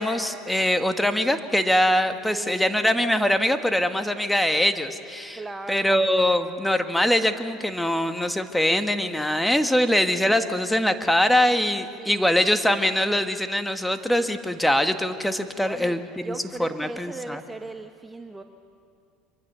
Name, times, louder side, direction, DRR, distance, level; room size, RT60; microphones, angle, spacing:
voice 1, 0.0-5.4 5.7-17.4, left 1 dB, 5° left, 8 dB, 1.5 m, -23 dB
voice 2, 2.3-2.8 5.3-6.0 12.0-12.3 15.6-16.0 16.2-18.4, right 2 dB, 15° right, 7 dB, 1.1 m, -37 dB
24.5 x 23.0 x 6.9 m, 2.4 s
hypercardioid pair, 80°, 0 cm